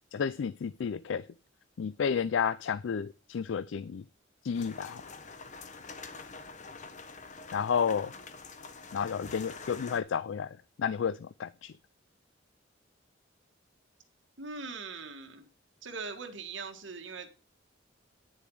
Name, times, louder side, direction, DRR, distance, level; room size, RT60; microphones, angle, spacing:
voice 1, 0.1-1.3 1.8-4.0 4.4-5.0 7.5-8.1 8.9-11.7, left 7 dB, 70° left, 0.4 m, -31 dB
sound 1, 4.5-10.0, left 4 dB, 40° left, 1.1 m, -46 dB
voice 2, 14.4-15.5 15.8-17.3, right 4 dB, 75° right, 1.7 m, -41 dB
9.6 x 7.0 x 4.8 m
head